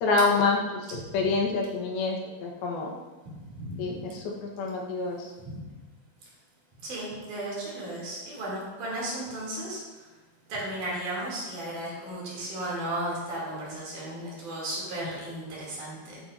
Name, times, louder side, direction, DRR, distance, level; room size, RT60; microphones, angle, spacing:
voice 1, 0.0-0.9 1.1-2.9 3.8-5.3 15.0-15.1, left 3 dB, 75° left, 0 dB, 2.9 m, -27 dB
voice 2, 3.5-4.0 5.5-5.6 6.8-9.8 10.5-16.2, right 1 dB, 55° right, -5 dB, 4.0 m, -35 dB
12.0 x 9.5 x 2.6 m, 1.2 s
omnidirectional pair, 4.6 m